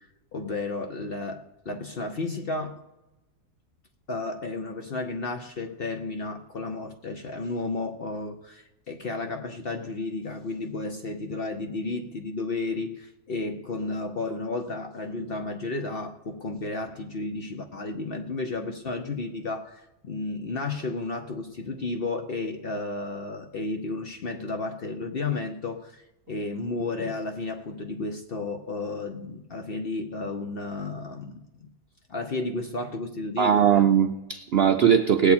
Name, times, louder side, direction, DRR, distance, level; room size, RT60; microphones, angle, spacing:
voice 1, 0.0-2.8 4.1-31.7 32.1-33.9, left 3 dB, 50° left, 0.7 m, -33 dB
voice 2, 33.4-35.3, right 8 dB, 65° right, 0.6 m, -20 dB
19.0 x 8.3 x 4.3 m
omnidirectional pair, 1.6 m